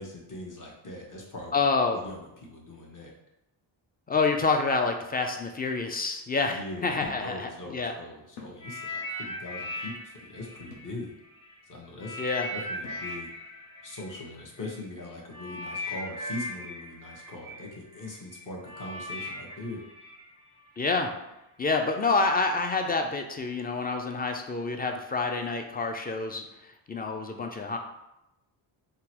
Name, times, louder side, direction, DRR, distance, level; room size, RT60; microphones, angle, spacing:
voice 1, 0.0-1.6 1.9-3.1 6.4-11.1 11.7-12.2 12.5-13.3 13.8-19.8, left 2 dB, 40° left, -2 dB, 1.0 m, -41 dB
voice 2, 1.5-2.0 4.1-7.9 12.2-12.5 20.8-21.1 21.6-27.8, left 4 dB, 20° left, 4 dB, 0.3 m, -28 dB
sound 1, 4.1-4.7 5.8-5.9 7.0-7.4 7.8-7.9 8.4-8.6 10.7-11.0 12.8-13.1, left 3 dB, 90° left, 0.7 m, -46 dB
sound 2, 8.6-11.5 12.0-21.0 21.7-21.8, left 1 dB, 70° left, 1.3 m, -39 dB
3.7 x 2.1 x 2.9 m, 0.89 s
cardioid pair, 75°, 49 cm